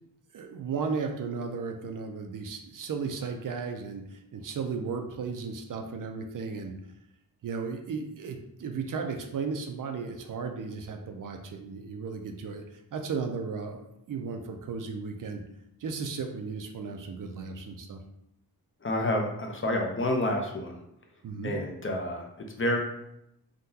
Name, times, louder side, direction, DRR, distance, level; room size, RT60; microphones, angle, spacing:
voice 1, 0.3-6.7 7.4-12.7 12.9-15.4 15.8-18.0 21.2-21.6, right 5 dB, 60° right, 5 dB, 0.4 m, -35 dB
voice 2, 18.8-20.8 21.4-22.2 22.6-22.8, left 1 dB, 35° left, 2 dB, 0.5 m, -28 dB
3.6 x 2.2 x 2.7 m, 0.80 s
wide cardioid pair, 80°, 37 cm